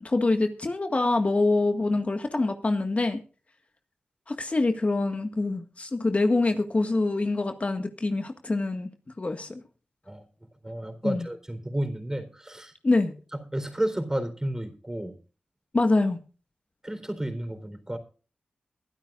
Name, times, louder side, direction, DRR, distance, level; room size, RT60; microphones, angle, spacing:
voice 1, 0.0-3.2 4.3-8.9 9.2-9.6 11.0-11.2 12.8-13.1 15.7-16.2, left 2 dB, 40° left, 6 dB, 1.7 m, -25 dB
voice 2, 10.6-12.7 13.5-15.1 16.8-18.0, right 1 dB, 15° right, 7 dB, 4.0 m, -31 dB
22.5 x 11.5 x 2.5 m, 0.37 s
cardioid pair, 45°, 3 cm